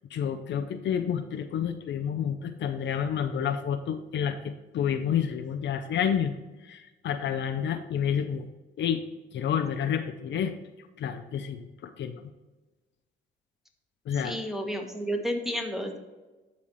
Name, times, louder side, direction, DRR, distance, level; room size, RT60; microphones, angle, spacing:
voice 1, 0.1-6.4 6.6-8.5 8.8-9.1 9.3-10.5 11.0-12.3 14.1-14.4, left 8 dB, 65° left, 7 dB, 0.6 m, -29 dB
voice 2, 14.2-16.0, equal, ahead, 3 dB, 1.4 m, -31 dB
12.0 x 4.2 x 3.1 m, 1.1 s
cardioid pair, 90°, 20 cm